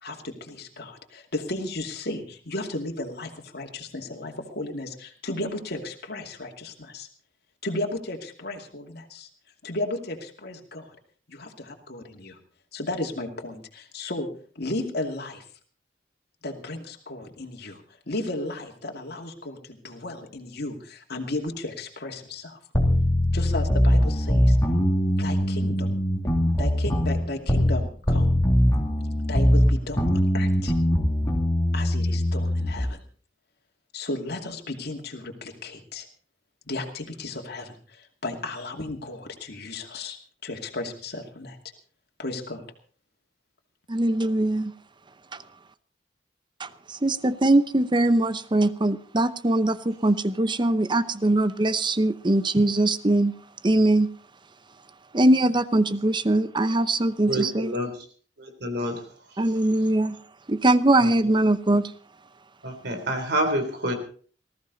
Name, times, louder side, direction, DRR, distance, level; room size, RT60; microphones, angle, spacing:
voice 1, 0.0-7.1 7.6-9.3 9.6-11.0 11.3-12.4 12.7-14.3 14.6-15.4 16.4-22.6 23.3-24.6 25.2-26.0 26.6-28.3 29.3-30.7 31.7-33.0 33.9-36.1 36.7-41.6 42.2-42.6, left 2 dB, 60° left, 2 dB, 2.5 m, -34 dB
sound 1, 22.7-27.8 28.1-32.8, equal, 20° left, 2.7 m, -22 dB
voice 2, 43.9-44.7 46.6-53.4 53.6-54.1 55.1-57.7 59.4-60.2 60.5-61.9, right 1 dB, 25° right, 14 dB, 0.8 m, -22 dB
voice 3, 57.3-57.9 58.6-59.0 62.6-63.9, right 1 dB, 65° right, 6 dB, 3.6 m, -27 dB
19.5 x 15.0 x 4.1 m, 0.43 s
head